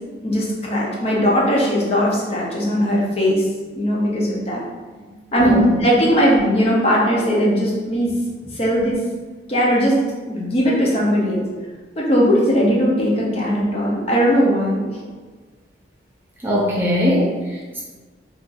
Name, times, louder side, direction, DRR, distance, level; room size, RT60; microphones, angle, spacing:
voice 1, 0.2-3.4 3.8-4.6 5.3-8.1 8.5-9.0 9.5-11.4 12.0-15.0, equal, 35° left, -4 dB, 0.6 m, -18 dB
voice 2, 16.4-17.8, equal, 10° right, -6 dB, 0.4 m, -20 dB
2.5 x 2.3 x 3.9 m, 1.3 s
head